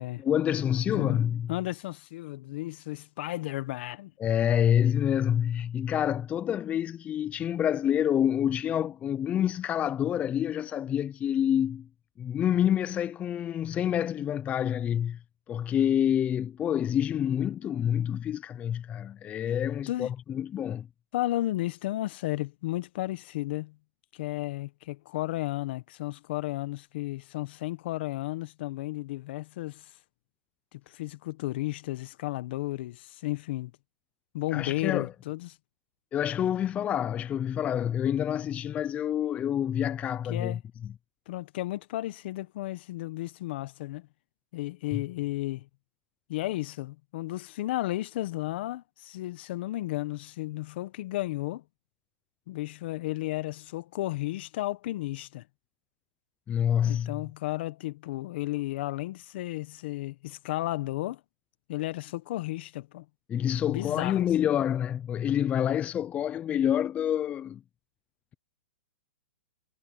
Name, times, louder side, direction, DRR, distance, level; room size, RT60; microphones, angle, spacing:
voice 1, 0.2-1.5 4.2-11.9 12.2-15.2 15.5-20.9 34.5-35.1 36.1-40.6 44.9-45.0 56.5-57.2 63.3-67.6, left 10 dB, 20° left, 0.6 m, -27 dB
voice 2, 0.9-1.2 1.5-4.1 19.9-20.1 21.1-23.8 24.1-29.9 30.7-33.7 34.3-35.6 40.3-40.6 41.3-44.1 44.5-45.7 46.3-51.6 52.5-55.4 56.8-61.2 61.7-63.0 63.7-64.3, left 17 dB, 55° left, 1.4 m, -33 dB
hypercardioid pair, 140°, 7 cm